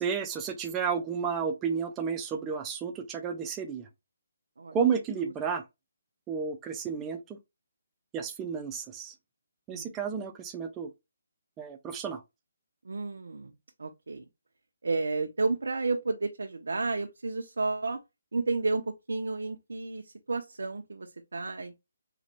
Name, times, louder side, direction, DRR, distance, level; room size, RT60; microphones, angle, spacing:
voice 1, 0.0-3.9 4.7-5.6 6.3-7.4 8.1-9.1 9.7-10.9 11.6-12.2, right 6 dB, 10° right, 0.3 m, -32 dB
voice 2, 12.8-13.5 13.8-14.3 14.8-18.0 18.3-18.8 19.1-21.7, right 3 dB, 90° right, 0.6 m, -31 dB
3.9 x 2.1 x 3.0 m
hypercardioid pair, 175°, 0 cm